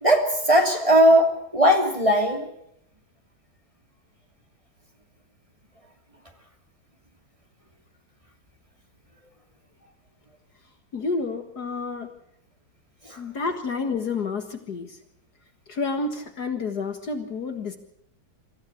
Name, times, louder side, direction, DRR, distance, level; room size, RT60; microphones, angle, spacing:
voice 1, 0.0-2.5, equal, 15° right, 3 dB, 2.7 m, -18 dB
voice 2, 10.9-12.1 13.2-15.0 15.7-17.8, left 4 dB, 55° left, 7 dB, 2.1 m, -29 dB
24.0 x 14.5 x 8.4 m, 0.76 s
omnidirectional pair, 2.2 m